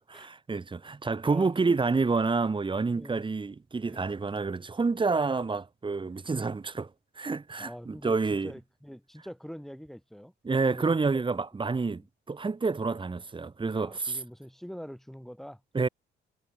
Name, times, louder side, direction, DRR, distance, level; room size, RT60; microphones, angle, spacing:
voice 1, 0.2-6.9 7.1-8.5 10.4-12.0 12.3-14.2 15.7-15.9, right 4 dB, 25° right, 1.7 m, -28 dB
voice 2, 1.2-1.8 2.9-3.2 3.8-4.1 6.0-6.2 7.6-8.2 8.4-10.3 10.6-12.1 13.7-15.6, equal, ahead, 6.2 m, -45 dB
cardioid pair, 90°, 20 cm